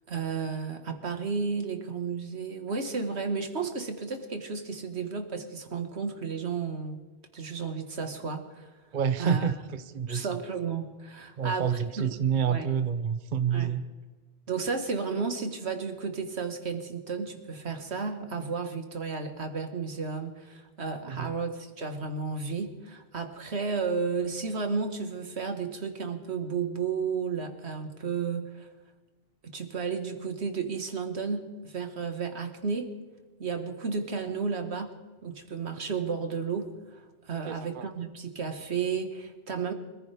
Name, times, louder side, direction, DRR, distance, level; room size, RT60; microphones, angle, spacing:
voice 1, 0.1-7.0 7.3-8.7 9.2-9.5 10.1-12.2 12.5-12.7 13.5-13.7 14.5-28.7 29.4-32.9 33.4-34.9 35.2-37.0 37.2-39.7, right 5 dB, 85° right, 6 dB, 1.8 m, -33 dB
voice 2, 8.9-10.3 11.4-13.8 21.1-21.3 37.5-37.8, right 7 dB, 50° right, 11 dB, 0.8 m, -28 dB
25.5 x 15.0 x 3.5 m, 1.3 s
omnidirectional pair, 1.1 m